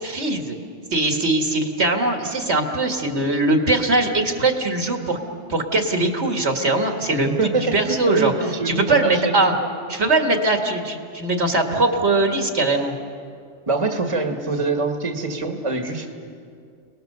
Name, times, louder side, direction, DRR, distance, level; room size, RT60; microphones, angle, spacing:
voice 1, 0.0-0.6 0.9-5.2 5.5-8.3 8.7-9.5 9.9-12.9, right 2 dB, 65° right, 3 dB, 2.1 m, -21 dB
voice 2, 7.1-9.7 13.7-16.1, right 3 dB, 25° right, 3 dB, 1.8 m, -24 dB
30.0 x 19.5 x 6.7 m, 2.3 s
omnidirectional pair, 1.2 m